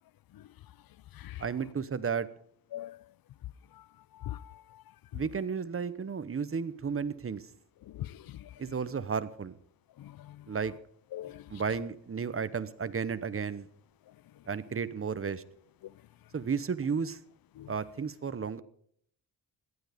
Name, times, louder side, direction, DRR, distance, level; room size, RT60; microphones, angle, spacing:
voice 1, 1.4-2.3 5.1-7.5 8.6-9.6 10.5-10.7 11.5-13.7 14.5-15.4 16.3-17.2 17.7-18.6, right 6 dB, 30° right, 1.0 m, -33 dB
voice 2, 4.2-4.6 7.9-8.5 10.0-10.4 11.1-11.4 17.6-17.7, left 13 dB, 50° left, 0.5 m, -41 dB
18.0 x 12.0 x 5.1 m
cardioid pair, 115°, 46 cm